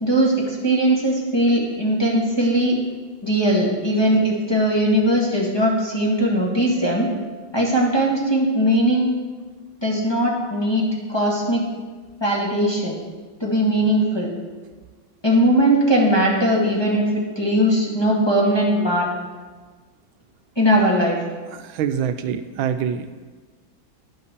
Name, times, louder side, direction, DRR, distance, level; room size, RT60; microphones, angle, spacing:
voice 1, 0.0-2.8 3.2-7.1 7.5-9.1 9.8-11.6 12.2-13.0 13.4-14.3 15.2-19.1 20.5-21.2, right 1 dB, 15° left, -5 dB, 1.7 m, -19 dB
voice 2, 21.5-23.2, right 8 dB, 80° right, 9 dB, 1.4 m, -25 dB
11.0 x 5.6 x 6.6 m, 1.3 s
omnidirectional pair, 2.2 m